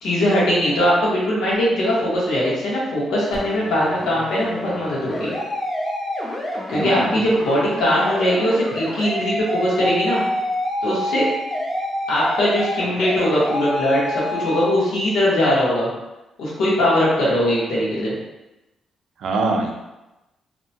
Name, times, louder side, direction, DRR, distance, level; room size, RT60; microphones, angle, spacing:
voice 1, 0.0-5.3 6.7-10.2 10.8-11.3 12.1-15.9 16.4-18.1, equal, 85° left, -6 dB, 1.1 m, -20 dB
sound 1, 3.3-14.7, equal, 20° left, 0.5 m, -28 dB
voice 2, 6.7-7.2 19.2-19.7, right 3 dB, 70° right, 1 dB, 0.4 m, -23 dB
2.7 x 2.1 x 2.8 m, 0.99 s
cardioid pair, 135°, 0 cm